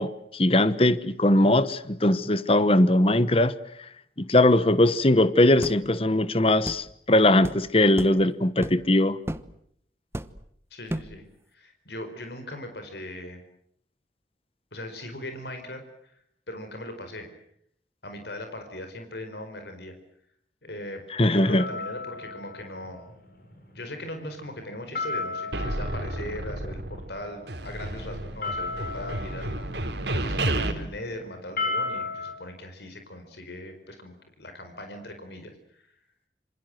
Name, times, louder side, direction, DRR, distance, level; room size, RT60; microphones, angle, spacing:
voice 1, 0.0-3.5 4.2-9.2 21.1-21.6, left 1 dB, 35° left, 1.1 m, -20 dB
sound 1, 5.6-5.8 6.7-6.9 7.4-7.6 8.0-8.2 8.6-8.9 9.3-9.5 10.1-10.5 10.9-11.2, right 1 dB, 15° right, 1.1 m, -33 dB
voice 2, 10.7-11.2 11.5-13.4 14.7-16.2 16.5-17.3 18.0-19.9 20.6-23.1 23.7-29.6 30.1-36.0, left 1 dB, 75° left, 4.7 m, -39 dB
sound 2, 21.6-32.3, left 3 dB, 55° left, 7.8 m, -36 dB
sound 3, 25.5-27.2 27.5-30.7, right 1 dB, 80° right, 3.8 m, -31 dB
27.5 x 26.5 x 7.8 m
head